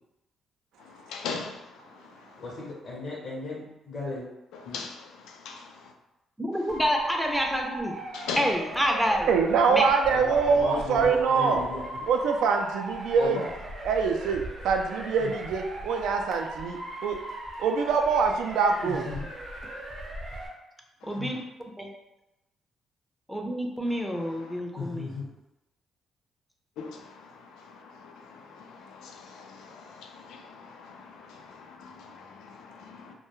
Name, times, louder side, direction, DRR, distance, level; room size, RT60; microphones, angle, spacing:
voice 1, 0.8-2.7 4.5-5.9 8.1-8.5 21.0-21.3 23.9-24.6 26.8-33.1, left 5 dB, 90° left, 0.4 m, -41 dB
voice 2, 2.4-4.3 4.6-4.8 10.1-11.8 13.2-13.4 15.2-15.3 18.8-19.2 21.2-21.3 24.7-25.3, left 2 dB, 65° left, 0.7 m, -35 dB
voice 3, 6.4-8.0 8.3-9.3 9.7-9.8 21.0-21.4 21.8-21.9 23.3-25.1, equal, ahead, 0.4 m, -28 dB
Motor vehicle (road) / Siren, 6.7-20.5, right 1 dB, 50° right, 0.7 m, -38 dB
voice 4, 9.3-11.6 12.1-13.5 13.8-17.2 17.6-19.1, right 5 dB, 80° right, 0.3 m, -24 dB
2.2 x 2.1 x 3.0 m
cardioid pair, 90°, 0 cm